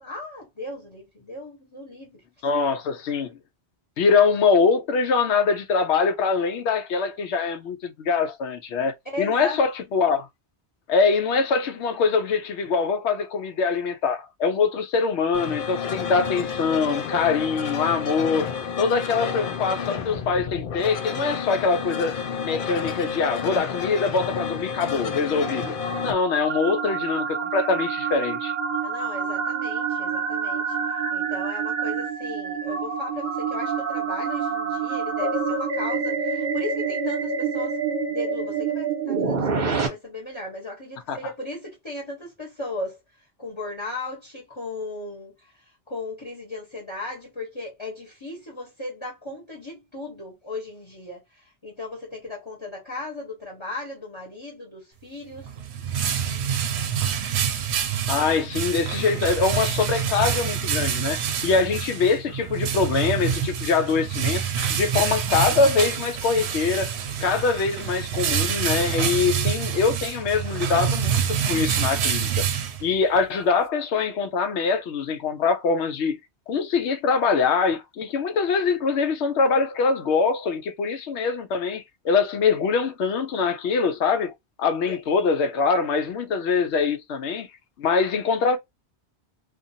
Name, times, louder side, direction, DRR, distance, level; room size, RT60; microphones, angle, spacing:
voice 1, 0.0-2.2 9.0-9.6 28.8-30.8 31.1-37.8 38.1-43.0 43.4-45.5 45.9-55.5 84.9-85.0, left 2 dB, 25° left, 1.2 m, -36 dB
voice 2, 2.4-3.4 4.0-10.3 10.9-18.5 18.8-25.7 26.0-28.6 41.1-41.3 58.1-66.9 67.2-71.2 71.5-72.3 72.8-76.2 76.5-84.3 84.6-87.5 87.8-88.6, left 5 dB, 90° left, 0.9 m, -23 dB
sound 1, 15.3-26.1, left 6 dB, 60° left, 0.7 m, -30 dB
sound 2, 24.8-39.9, right 5 dB, 45° right, 0.9 m, -27 dB
sound 3, 55.3-73.2, right 8 dB, 75° right, 0.8 m, -26 dB
2.5 x 2.5 x 2.6 m
omnidirectional pair, 1.1 m